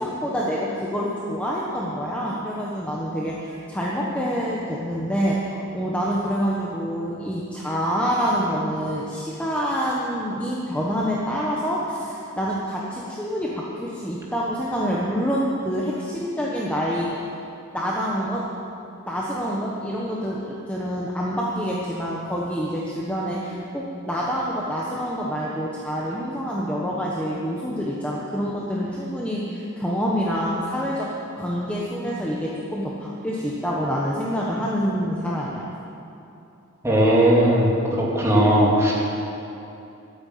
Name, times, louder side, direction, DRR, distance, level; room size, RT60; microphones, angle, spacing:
voice 1, 0.0-17.2 17.7-18.5 19.1-35.6, equal, 5° left, -5 dB, 1.2 m, -27 dB
voice 2, 36.8-38.9, right 1 dB, 15° right, -5 dB, 2.8 m, -18 dB
13.5 x 8.8 x 8.6 m, 2.8 s
head